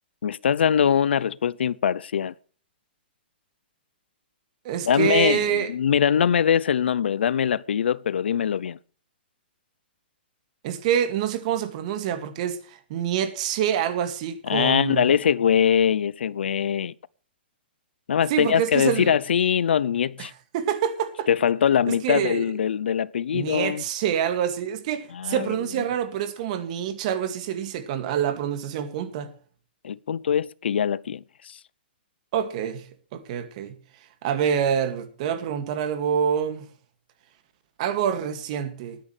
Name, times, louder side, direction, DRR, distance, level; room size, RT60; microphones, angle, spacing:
voice 1, 0.2-2.3 4.8-8.8 14.5-16.9 18.1-20.3 21.3-23.8 25.1-25.5 29.8-31.6, left 8 dB, 80° left, 0.6 m, -22 dB
voice 2, 4.6-5.7 10.6-15.1 18.3-19.1 20.2-21.3 21.9-22.5 23.3-29.3 32.3-32.9 33.1-33.8 34.2-36.7 37.8-39.0, right 9 dB, 40° right, 2.2 m, -26 dB
20.5 x 10.5 x 3.3 m
hypercardioid pair, 160°, 6 cm